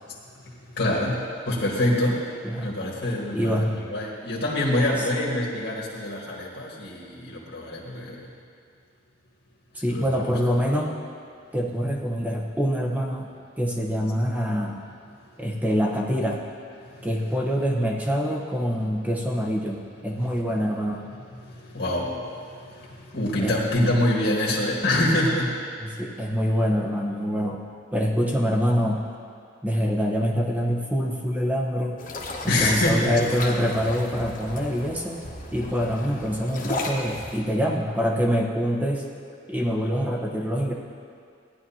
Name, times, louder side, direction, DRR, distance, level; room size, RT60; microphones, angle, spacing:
voice 1, 0.4-2.3 2.6-8.3 9.9-10.3 16.8-17.1 21.4-25.5 32.4-33.1, left 1 dB, 60° left, -4 dB, 1.6 m, -26 dB
voice 2, 3.3-3.8 9.7-11.0 11.5-13.3 13.6-14.8 15.4-16.4 17.0-21.0 23.4-24.0 25.8-27.6 27.9-29.0 29.6-32.0 32.4-35.2 35.5-39.1 39.5-40.7, equal, 10° right, -1 dB, 1.0 m, -25 dB
sound 1, 32.0-37.4, left 2 dB, 45° left, 1.3 m, -35 dB
16.0 x 10.5 x 2.9 m, 2.3 s
head